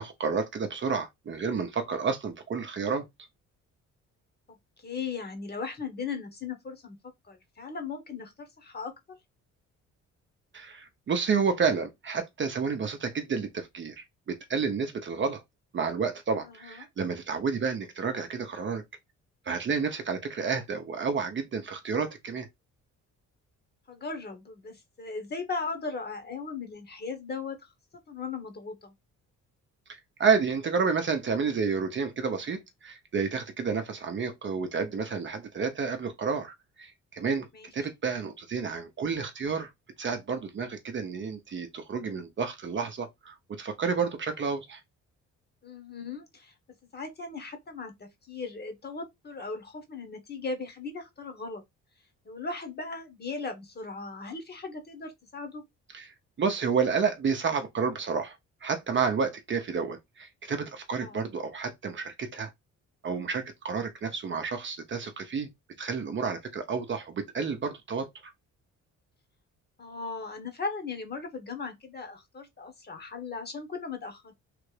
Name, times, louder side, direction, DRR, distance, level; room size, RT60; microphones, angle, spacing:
voice 1, 0.0-3.1 10.5-15.4 15.7-18.8 19.5-22.5 29.9-37.5 37.7-39.7 40.0-44.8 55.9-58.4 58.6-62.5 63.0-65.5 65.8-68.3, right 5 dB, 40° right, 0.7 m, -30 dB
voice 2, 4.8-7.0 7.3-8.9 16.4-16.9 23.9-27.7 28.1-28.9 37.5-37.7 45.6-46.5 46.9-51.6 52.2-55.6 61.0-61.2 69.8-74.3, left 4 dB, 35° left, 1.2 m, -37 dB
3.3 x 2.5 x 3.2 m
cardioid pair, 90°, 30 cm